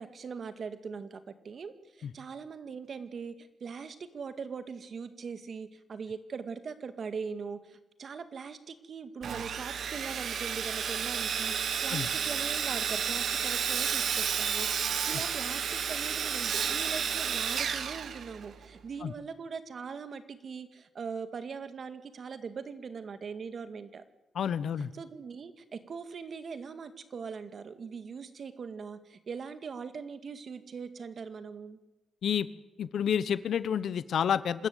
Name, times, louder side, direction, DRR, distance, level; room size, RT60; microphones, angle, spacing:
voice 1, 0.0-11.6 11.8-24.0 24.9-31.8, right 5 dB, 55° right, 10 dB, 1.9 m, -41 dB
Sawing, 9.2-18.7, right 7 dB, 70° right, 1.3 m, -31 dB
voice 2, 24.3-24.9 32.2-32.5 32.8-34.7, left 8 dB, 70° left, 16 dB, 1.0 m, -29 dB
26.0 x 13.5 x 9.2 m, 1.0 s
cardioid pair, 100°, 0 cm